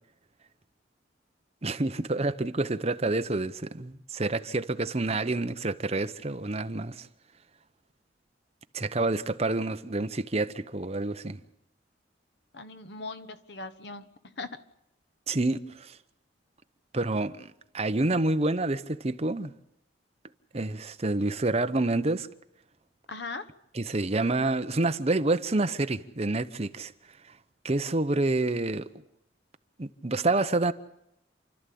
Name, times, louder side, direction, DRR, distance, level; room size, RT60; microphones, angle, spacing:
voice 1, 1.6-7.1 8.7-11.4 15.3-15.9 16.9-19.5 20.5-22.3 23.7-26.9 27.6-28.8 29.8-30.7, right 2 dB, 35° right, 0.9 m, -28 dB
voice 2, 12.5-14.6 23.1-23.5, left 3 dB, 65° left, 1.3 m, -39 dB
29.0 x 13.0 x 8.6 m
head